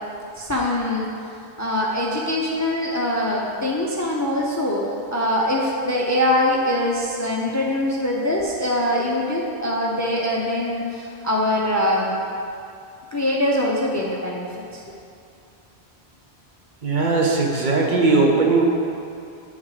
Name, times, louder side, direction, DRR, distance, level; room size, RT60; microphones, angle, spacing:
voice 1, 0.4-1.1 1.6-12.1 13.1-14.5 14.7-14.8, left 1 dB, 20° left, -3 dB, 0.5 m, -23 dB
voice 2, 16.8-18.6, right 3 dB, 50° right, -1 dB, 0.9 m, -18 dB
8.9 x 3.7 x 4.8 m, 2.5 s
omnidirectional pair, 1.0 m